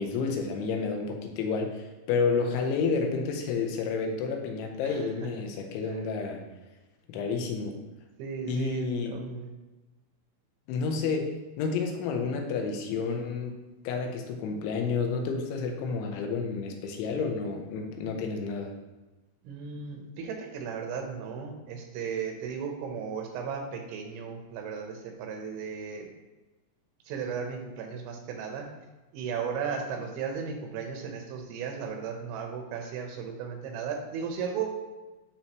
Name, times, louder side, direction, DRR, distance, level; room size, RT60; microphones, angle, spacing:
voice 1, 0.0-6.4 7.1-7.8 8.5-9.2 10.7-11.3 11.6-13.6 13.9-18.7, left 4 dB, 90° left, 3 dB, 3.3 m, -30 dB
voice 2, 4.8-5.3 8.2-9.5 19.5-26.1 27.1-28.7 29.1-34.8, right 6 dB, 85° right, 3 dB, 3.4 m, -35 dB
12.5 x 4.3 x 3.0 m, 1.1 s
omnidirectional pair, 5.2 m